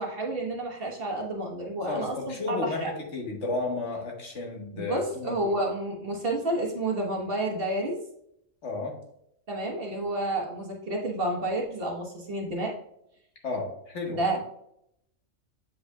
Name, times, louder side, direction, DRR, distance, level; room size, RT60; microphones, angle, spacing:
voice 1, 0.0-2.9 4.7-8.0 9.5-12.7 14.1-14.4, right 1 dB, 45° right, -1 dB, 1.3 m, -30 dB
voice 2, 1.9-5.3 8.6-9.0 13.4-14.4, left 3 dB, 60° left, 0 dB, 1.7 m, -33 dB
7.6 x 5.4 x 2.3 m, 0.75 s
omnidirectional pair, 1.4 m